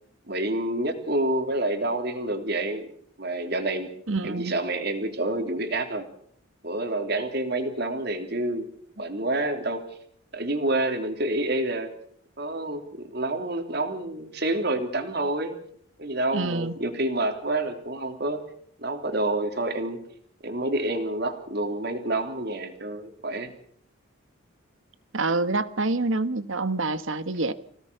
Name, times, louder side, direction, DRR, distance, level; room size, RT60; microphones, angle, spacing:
voice 1, 0.3-2.9 3.2-3.9 4.2-6.0 6.6-8.7 9.0-9.8 10.3-11.9 12.4-15.6 16.0-18.4 18.8-20.0 20.4-23.5, right 1 dB, 50° right, 6 dB, 3.1 m, -28 dB
voice 2, 4.1-4.5 16.3-16.7 25.1-27.5, right 3 dB, 70° right, 13 dB, 1.4 m, -26 dB
26.0 x 17.5 x 6.9 m, 0.64 s
head